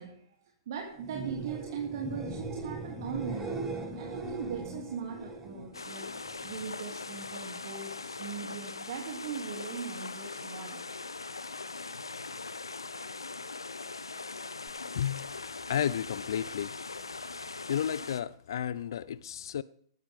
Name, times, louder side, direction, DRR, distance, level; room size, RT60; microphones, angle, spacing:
voice 1, 0.0-11.0, right 6 dB, 55° right, 2.8 m, -40 dB
sound 1, 0.9-6.7 7.0-7.6 14.7-14.8, right 2 dB, 20° right, 6.4 m, -40 dB
sound 2, 5.7-18.2, left 3 dB, 85° left, 0.9 m, -41 dB
voice 2, 14.9-16.8 17.4-19.6, left 9 dB, 65° left, 0.5 m, -33 dB
17.5 x 13.0 x 3.6 m
figure-of-eight pair, 110°, 2 cm